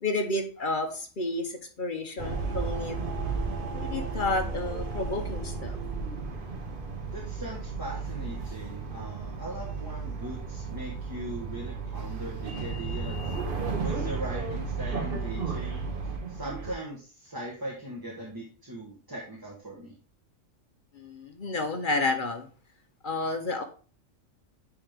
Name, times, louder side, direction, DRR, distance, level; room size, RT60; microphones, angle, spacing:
voice 1, 0.0-3.0 3.2-3.3 3.7-5.8 20.9-22.5 23.0-23.6, left 2 dB, 45° left, 6 dB, 0.8 m, -31 dB
sound 1, 2.2-16.7, right 4 dB, 45° right, 1.1 m, -33 dB
voice 2, 7.1-13.3 13.8-15.9 16.3-19.9, right 1 dB, 15° right, -3 dB, 1.2 m, -39 dB
9.4 x 3.6 x 3.3 m, 0.39 s
omnidirectional pair, 1.4 m